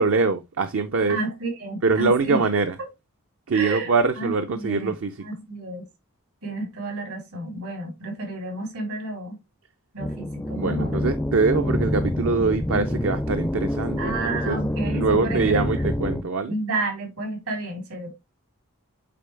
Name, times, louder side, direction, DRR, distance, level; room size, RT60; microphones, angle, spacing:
voice 1, 0.0-1.2 1.8-2.8 3.5-5.2 10.5-16.6, right 4 dB, 60° right, 0.6 m, -23 dB
voice 2, 1.1-2.4 3.5-3.9 4.2-4.9 5.2-5.8 6.4-9.4 9.9-10.9 14.0-15.9 16.5-18.1, right 2 dB, 75° right, 3.7 m, -31 dB
sound 1, 10.0-16.2, left 1 dB, 10° left, 0.4 m, -27 dB
8.7 x 3.8 x 3.3 m
head